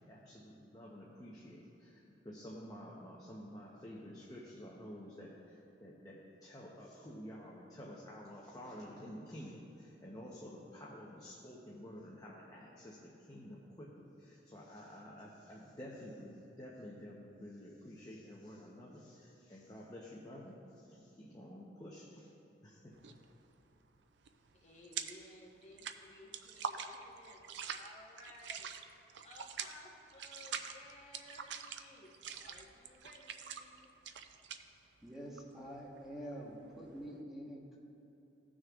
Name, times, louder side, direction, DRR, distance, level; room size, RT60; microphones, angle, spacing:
voice 1, 0.1-22.3 22.6-22.9, equal, 20° left, -4 dB, 0.8 m, -50 dB
sound 1, 22.9-23.3 23.6-25.3 25.6-37.1, right 7 dB, 75° right, 0.4 m, -45 dB
voice 2, 24.5-28.7 29.0-33.9, left 1 dB, 35° left, -3 dB, 1.2 m, -57 dB
voice 3, 35.0-37.8, equal, ahead, -5 dB, 1.0 m, -46 dB
16.0 x 6.3 x 2.4 m, 3.0 s
head